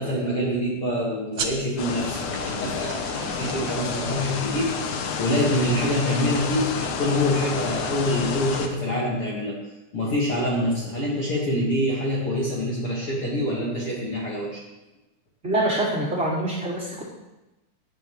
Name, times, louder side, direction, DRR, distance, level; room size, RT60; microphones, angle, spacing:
voice 1, 0.0-9.6 9.9-14.6, left 1 dB, 45° left, -4 dB, 2.5 m, -26 dB
sound 1, 1.3-6.4, right 5 dB, 90° right, 0.9 m, -38 dB
sound 2, 1.8-8.7, left 5 dB, 70° left, 2.2 m, -30 dB
voice 2, 15.4-17.0, right 1 dB, 20° right, -9 dB, 4.2 m, -25 dB
18.0 x 10.5 x 3.2 m, 1.0 s
omnidirectional pair, 3.8 m